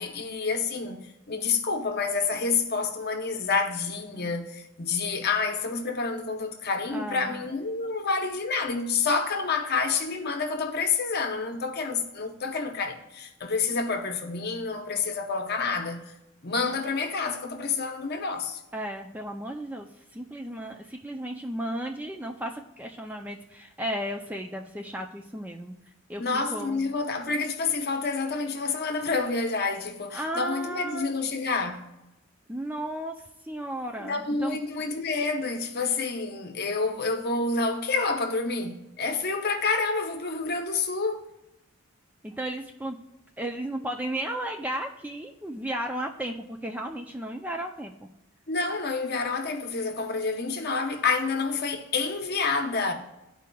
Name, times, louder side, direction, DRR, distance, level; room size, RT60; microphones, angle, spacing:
voice 1, 0.0-16.1 16.4-18.6 26.2-31.9 34.0-41.2 48.5-52.9, left 4 dB, 45° left, 0.8 m, -28 dB
voice 2, 6.9-7.4 18.7-25.7 26.1-26.9 30.1-31.1 32.5-33.1 33.4-34.6 42.2-43.0 43.4-48.1, right 1 dB, 5° right, 0.3 m, -34 dB
13.0 x 4.6 x 2.3 m
head